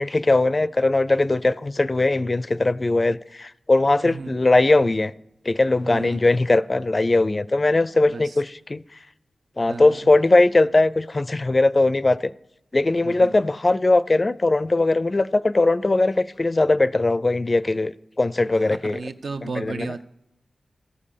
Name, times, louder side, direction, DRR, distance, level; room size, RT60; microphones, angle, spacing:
voice 1, 0.0-5.1 5.5-8.8 9.6-12.3 12.7-19.0 19.4-19.9, left 2 dB, 35° left, 0.4 m, -20 dB
voice 2, 4.0-4.3 5.8-6.3 8.0-8.4 9.7-10.1 13.0-13.4 18.5-20.0, right 4 dB, 70° right, 0.7 m, -34 dB
14.5 x 5.4 x 6.7 m
cardioid pair, 45°, 0 cm